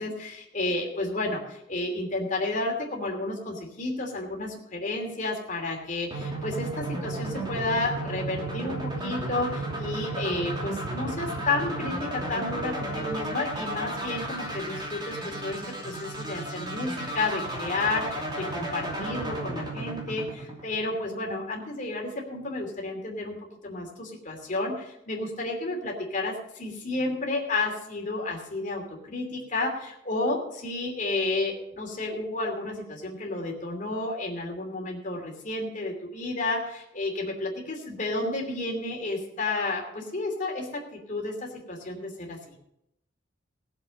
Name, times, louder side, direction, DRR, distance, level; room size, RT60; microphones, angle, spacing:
voice 1, 0.0-23.4 23.6-42.5, left 2 dB, 45° left, 0 dB, 2.9 m, -31 dB
sound 1, 6.1-21.0, right 2 dB, 25° right, 2.8 m, -33 dB
17.5 x 7.4 x 5.3 m, 0.79 s
head